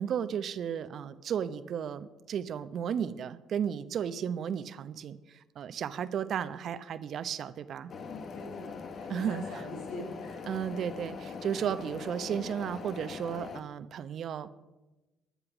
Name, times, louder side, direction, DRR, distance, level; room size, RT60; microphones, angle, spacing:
voice 1, 0.0-7.9 9.1-9.7 10.5-14.5, right 8 dB, 55° right, 14 dB, 0.8 m, -34 dB
sound 1, 7.9-13.6, left 5 dB, 50° left, 1.2 m, -42 dB
voice 2, 8.0-11.0, left 2 dB, 85° left, -2 dB, 5.9 m, -44 dB
16.5 x 11.0 x 6.1 m, 1.1 s
hypercardioid pair, 55°, 0 cm